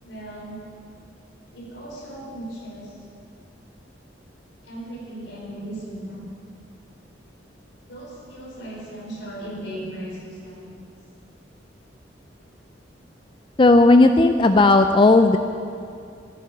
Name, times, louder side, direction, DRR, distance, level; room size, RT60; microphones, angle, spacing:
voice 1, 0.0-0.6 1.5-3.0 4.6-6.3 7.9-10.7, right 1 dB, 85° left, -3 dB, 4.5 m, -37 dB
voice 2, 13.6-15.4, left 2 dB, 25° left, 7 dB, 0.4 m, -14 dB
13.0 x 11.0 x 8.3 m, 2.4 s
head